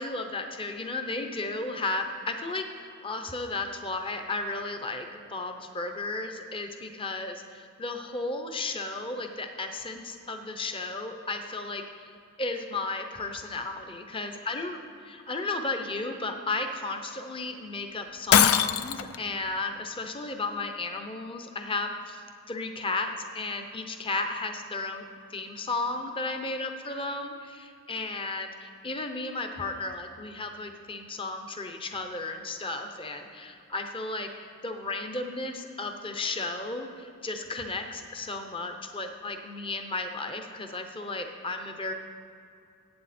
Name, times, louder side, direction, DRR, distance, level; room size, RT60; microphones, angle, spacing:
voice 1, 0.0-12.1 12.4-14.8 15.1-25.0 25.3-41.9, left 3 dB, 25° left, 5 dB, 0.7 m, -34 dB
Shatter, 18.3-19.2, left 9 dB, 70° left, 0.4 m, -21 dB
15.5 x 8.6 x 4.3 m, 2.5 s
head